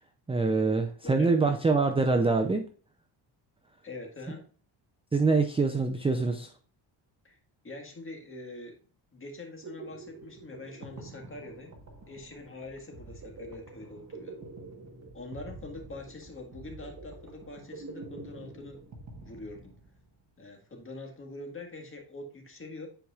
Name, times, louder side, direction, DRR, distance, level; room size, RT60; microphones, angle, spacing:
voice 1, 0.3-2.6 5.1-6.5, right 3 dB, 10° right, 6 dB, 0.5 m, -25 dB
voice 2, 1.0-1.6 3.8-4.4 7.2-7.4 7.6-8.8 9.1-11.7 12.1-14.4 15.1-18.8 19.2-19.8 20.4-22.9, left 2 dB, 25° left, 1 dB, 1.7 m, -44 dB
sound 1, 9.3-20.1, right 3 dB, 35° right, 1.4 m, -47 dB
10.0 x 4.7 x 2.4 m, 0.41 s
cardioid pair, 125°, 47 cm